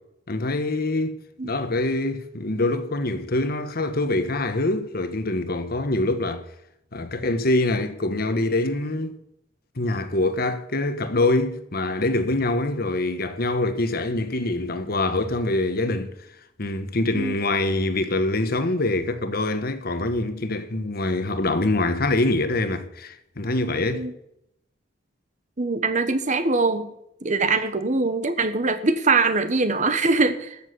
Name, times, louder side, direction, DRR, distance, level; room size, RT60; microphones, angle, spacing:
voice 1, 0.3-6.4 6.9-9.2 9.8-16.1 16.6-24.1, left 2 dB, 55° left, 1.3 m, -24 dB
voice 2, 25.6-26.9 27.2-30.6, right 3 dB, 40° right, 1.3 m, -22 dB
13.5 x 7.4 x 8.1 m
head